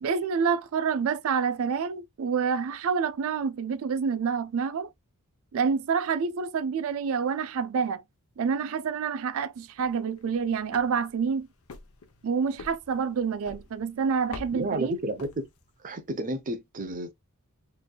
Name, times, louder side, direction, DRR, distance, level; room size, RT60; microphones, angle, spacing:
voice 1, 0.0-4.9 5.5-8.0 8.4-11.5 12.2-14.9, right 6 dB, 65° right, 0.4 m, -27 dB
Wood Stairs, 9.6-15.9, left 3 dB, 70° left, 0.8 m, -48 dB
voice 2, 14.5-15.5 15.8-17.1, right 1 dB, 35° right, 0.8 m, -31 dB
4.3 x 3.3 x 2.3 m
head